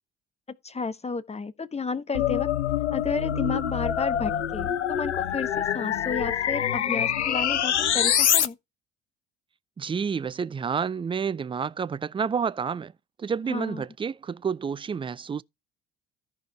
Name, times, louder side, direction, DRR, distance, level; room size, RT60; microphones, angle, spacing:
voice 1, 0.5-2.5 2.9-8.6 13.5-13.8, left 4 dB, 20° left, 1.2 m, -32 dB
sound 1, 2.1-8.5, left 9 dB, 85° left, 0.6 m, -25 dB
voice 2, 9.8-12.9 13.2-15.4, right 6 dB, 15° right, 0.4 m, -29 dB
14.0 x 4.7 x 4.7 m
figure-of-eight pair, 55°, 33 cm